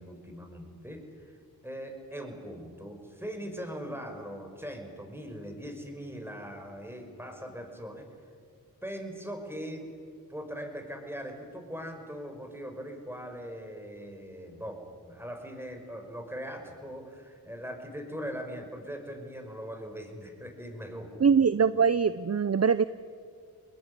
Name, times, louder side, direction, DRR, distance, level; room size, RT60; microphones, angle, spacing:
voice 1, 0.0-1.4 1.6-8.1 8.8-9.9 10.3-21.5, equal, 5° right, 4 dB, 6.0 m, -40 dB
voice 2, 21.2-22.8, right 6 dB, 40° right, 15 dB, 0.7 m, -23 dB
25.5 x 20.5 x 9.8 m, 2.1 s
cardioid pair, 50°, 38 cm